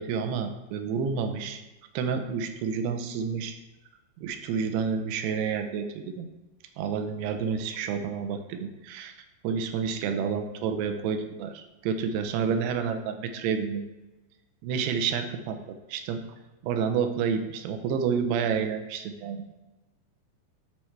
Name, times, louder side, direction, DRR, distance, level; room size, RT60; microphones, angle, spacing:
voice 1, 0.0-1.6 1.9-3.5 4.2-6.3 6.8-9.1 9.4-13.8 14.6-15.6 15.9-16.2 16.6-19.6, right 6 dB, 80° right, 6 dB, 2.6 m, -29 dB
13.0 x 4.5 x 3.3 m, 1.1 s
omnidirectional pair, 5.0 m